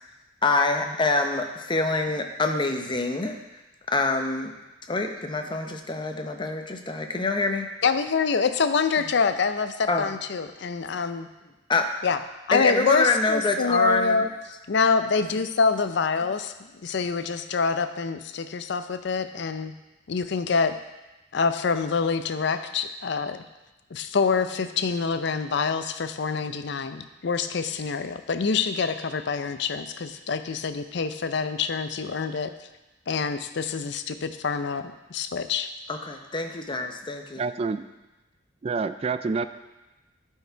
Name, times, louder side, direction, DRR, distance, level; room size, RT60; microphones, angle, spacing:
voice 1, 0.4-3.4 3.9-4.5 4.9-7.7 9.9-10.1 11.7-11.9 12.5-14.3 35.9-37.4, left 3 dB, 25° left, 5 dB, 0.7 m, -25 dB
voice 2, 7.8-11.3 12.0-12.2 12.5-14.3 14.7-19.7 20.1-20.7 21.3-23.4 23.9-32.5 33.1-35.7, left 5 dB, 60° left, 10 dB, 0.5 m, -26 dB
voice 3, 37.4-37.8 38.6-39.5, right 4 dB, 30° right, 12 dB, 0.3 m, -27 dB
11.5 x 4.7 x 4.5 m, 1.0 s
head